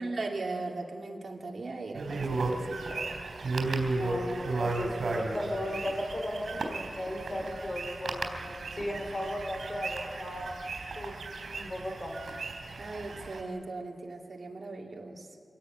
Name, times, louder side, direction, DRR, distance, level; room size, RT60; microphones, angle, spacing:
voice 1, 0.0-2.8 12.8-15.3, right 3 dB, 60° right, 0 dB, 2.7 m, -38 dB
sound 1, 1.9-13.4, right 3 dB, 90° right, 3.7 m, -35 dB
voice 2, 4.0-8.2 8.7-10.6 11.0-11.1 11.5-12.2, left 1 dB, 35° left, 3 dB, 4.3 m, -35 dB
24.5 x 17.5 x 9.0 m, 2.3 s
wide cardioid pair, 115°, 0 cm